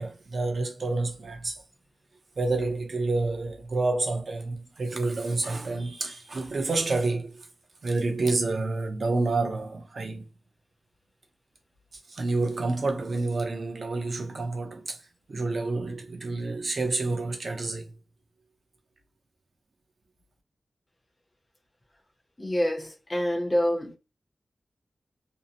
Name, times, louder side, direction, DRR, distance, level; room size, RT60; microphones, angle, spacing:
voice 1, 0.0-1.6 2.4-7.4 7.8-10.2 12.1-15.0 15.3-17.9, right 3 dB, 50° right, 0.6 m, -28 dB
voice 2, 22.4-23.9, equal, 20° left, 0.6 m, -26 dB
2.7 x 2.0 x 2.8 m
wide cardioid pair, 120°, 0 cm